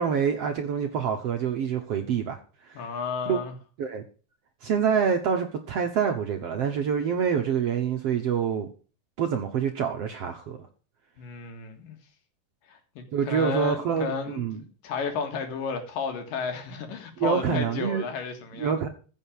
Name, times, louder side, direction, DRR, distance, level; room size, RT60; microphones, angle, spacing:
voice 1, 0.0-2.8 3.3-3.4 3.8-4.0 4.6-8.7 9.2-10.6 13.1-14.6 17.2-18.0 18.5-18.9, right 7 dB, 60° right, 1.7 m, -26 dB
voice 2, 2.8-3.6 11.2-12.0 12.7-18.7, left 5 dB, 70° left, 3.4 m, -32 dB
15.0 x 6.5 x 6.5 m
omnidirectional pair, 4.1 m